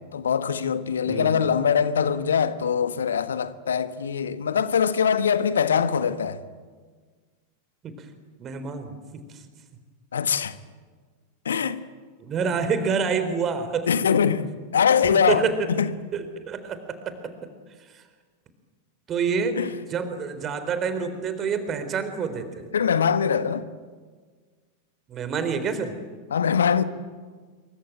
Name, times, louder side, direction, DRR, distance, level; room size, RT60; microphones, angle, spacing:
voice 1, 0.1-6.4 10.1-10.5 11.4-11.8 13.9-15.9 19.6-19.7 22.7-23.7 26.3-26.8, left 7 dB, 70° left, 1.4 m, -23 dB
voice 2, 8.4-9.0 12.2-13.9 15.3-15.5 16.1-16.8 19.1-19.6 19.9-22.5 25.1-26.0, right 6 dB, 30° right, 3.9 m, -27 dB
26.5 x 24.0 x 9.1 m
figure-of-eight pair, 90°, 0 cm